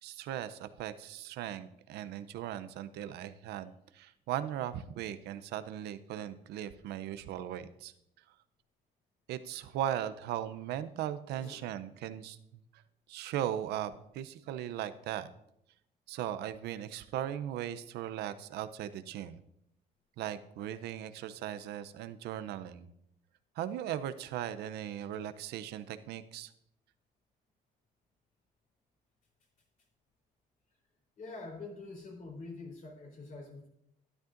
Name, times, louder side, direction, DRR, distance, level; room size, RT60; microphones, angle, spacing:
voice 1, 0.0-7.9 9.3-12.4 12.7-12.8 13.1-15.3 16.1-19.4 20.2-22.9 23.6-26.5, right 11 dB, 80° right, 13 dB, 0.6 m, -38 dB
voice 2, 11.3-11.6 31.2-33.7, left 3 dB, 50° left, 1 dB, 3.5 m, -45 dB
12.0 x 10.5 x 2.5 m, 0.77 s
cardioid pair, 110°, 17 cm